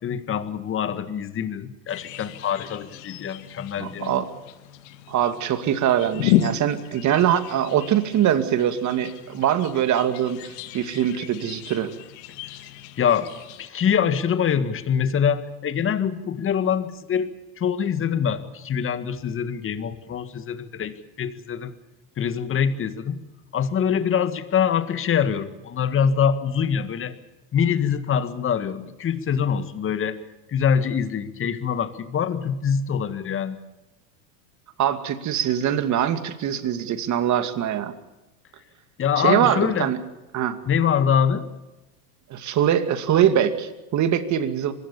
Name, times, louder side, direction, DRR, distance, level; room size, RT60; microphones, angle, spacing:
voice 1, 0.0-4.2 13.0-13.3 13.6-17.3 17.6-21.7 22.2-23.2 23.5-27.2 27.5-30.2 30.5-33.6 39.0-39.9 40.7-41.5, left 7 dB, 25° left, 12 dB, 1.9 m, -24 dB
sound 1, 1.9-13.7, left 13 dB, 60° left, 2.1 m, -32 dB
voice 2, 3.8-4.3 5.1-11.9 34.8-37.9 39.2-40.0 40.3-40.6 42.3-44.7, right 10 dB, 40° right, 10 dB, 2.4 m, -23 dB
24.5 x 21.0 x 7.0 m, 1.0 s
supercardioid pair, 120°, 46 cm